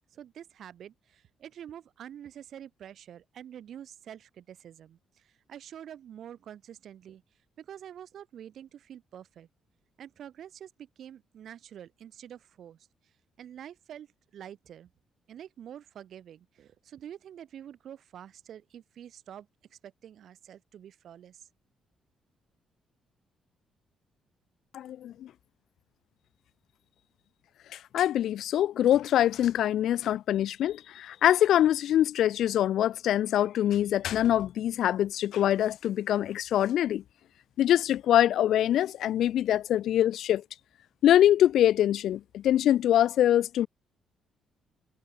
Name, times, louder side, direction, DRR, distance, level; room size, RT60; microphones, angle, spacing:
voice 1, 0.1-7.2 7.6-9.5 10.0-12.8 13.4-14.1 14.3-14.9 15.3-21.5, right 10 dB, 65° right, 5.2 m, -47 dB
voice 2, 24.7-25.1 27.9-37.0 37.6-40.4 41.0-43.7, left 11 dB, 75° left, 1.2 m, -24 dB
cardioid pair, 90°, 0 cm